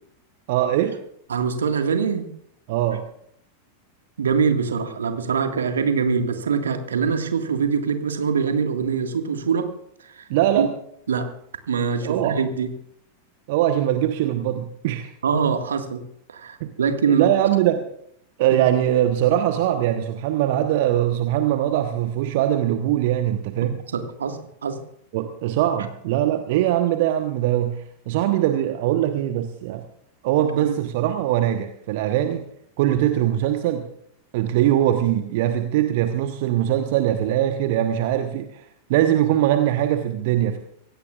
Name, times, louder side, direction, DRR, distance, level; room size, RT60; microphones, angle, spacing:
voice 1, 0.5-1.0 2.7-3.0 10.3-10.7 12.0-12.4 13.5-15.1 16.6-16.7 17.1-17.8 18.4-23.7 25.1-29.8 30.2-32.4 32.8-33.9 34.3-40.6, right 12 dB, 50° right, 7 dB, 1.1 m, -21 dB
voice 2, 1.3-2.3 4.2-9.7 10.0-10.3 10.6-10.7 11.1-11.3 11.7-12.7 15.2-16.0 16.3-17.3 23.9-24.8 30.6-30.7, right 6 dB, 65° right, 6 dB, 1.8 m, -23 dB
24.5 x 17.0 x 2.5 m, 0.71 s
figure-of-eight pair, 90°, 0 cm